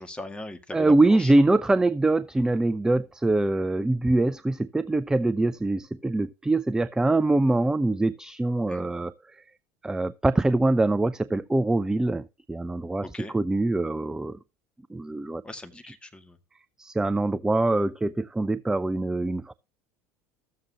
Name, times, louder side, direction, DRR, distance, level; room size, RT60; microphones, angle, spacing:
voice 1, 0.0-1.3 8.7-8.9 13.0-13.3 15.4-16.4, left 1 dB, 15° left, 1.9 m, -39 dB
voice 2, 0.7-9.4 9.8-14.4 14.9-15.4 15.8-15.9 16.8-19.5, right 2 dB, 10° right, 0.4 m, -24 dB
14.0 x 7.5 x 2.9 m
hypercardioid pair, 75°, 8 cm